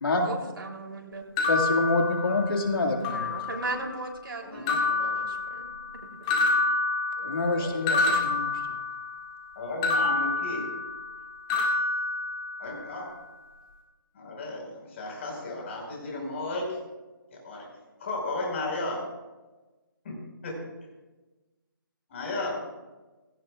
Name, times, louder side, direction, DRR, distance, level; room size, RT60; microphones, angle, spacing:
voice 1, 0.2-1.2 3.1-5.7, right 2 dB, 75° right, 1 dB, 3.3 m, -37 dB
voice 2, 1.4-3.4 7.2-8.6, left 2 dB, 75° left, 0 dB, 2.1 m, -27 dB
sound 1, 1.4-2.6 3.0-3.8 4.7-5.9 6.3-9.2 9.8-11.2 11.5-12.8, left 3 dB, 20° left, 1.9 m, -28 dB
voice 3, 4.4-5.1 7.2-7.3 7.6-8.2 9.5-10.6 12.6-13.0 14.1-16.8 17.3-17.6 18.0-19.0 20.0-20.2 20.4-20.5 22.1-22.6, left 2 dB, 35° left, -1 dB, 4.9 m, -34 dB
18.5 x 17.0 x 2.4 m, 1.2 s
hypercardioid pair, 165°, 12 cm